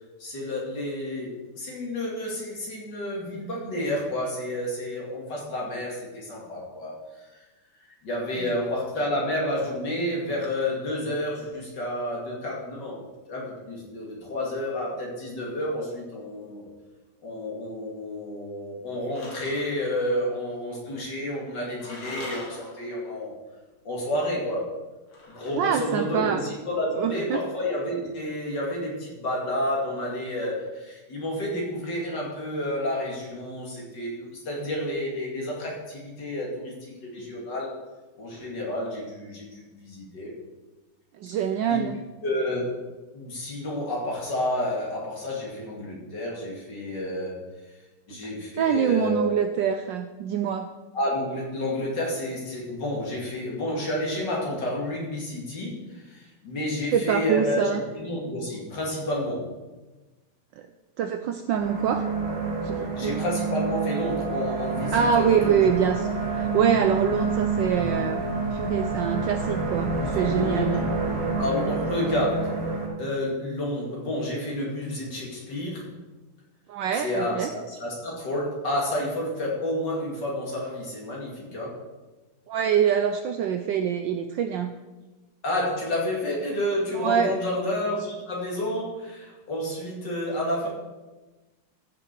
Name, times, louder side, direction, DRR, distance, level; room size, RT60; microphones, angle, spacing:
voice 1, 0.2-7.4 8.0-13.0 13.3-16.6 17.2-23.3 23.8-24.7 25.3-37.8 38.2-40.3 41.7-41.8 42.2-42.8 43.1-47.4 48.1-49.3 50.9-59.5 62.9-65.6 70.0-70.8 71.4-72.6 73.0-75.9 76.9-81.8 85.4-90.7, left 1 dB, 55° left, -3 dB, 2.9 m, -30 dB
sound 1, 19.1-19.9 21.8-23.0 25.1-26.2, left 2 dB, 80° left, 3.0 m, -41 dB
voice 2, 25.5-26.4 27.0-27.4 41.2-42.0 48.1-48.2 48.6-50.7 56.9-57.8 60.6-60.7 61.0-62.1 62.6-63.2 64.9-68.2 68.5-70.8 76.7-77.5 82.5-84.7 87.0-87.4, right 8 dB, 75° right, 7 dB, 1.1 m, -25 dB
sound 2, 61.6-72.9, right 4 dB, 55° right, 4.2 m, -28 dB
sound 3, 64.8-71.3, left 2 dB, 25° left, 1.0 m, -40 dB
14.0 x 6.1 x 4.6 m, 1.2 s
omnidirectional pair, 2.3 m